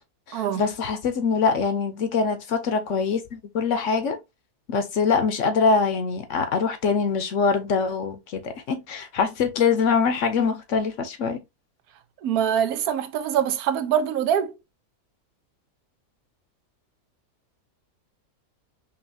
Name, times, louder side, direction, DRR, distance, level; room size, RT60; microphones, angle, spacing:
voice 1, 0.3-4.2 4.7-11.4, left 5 dB, 60° left, 1.0 m, -24 dB
voice 2, 12.2-14.5, right 9 dB, 85° right, 1.1 m, -24 dB
5.4 x 2.4 x 2.7 m
omnidirectional pair, 1.6 m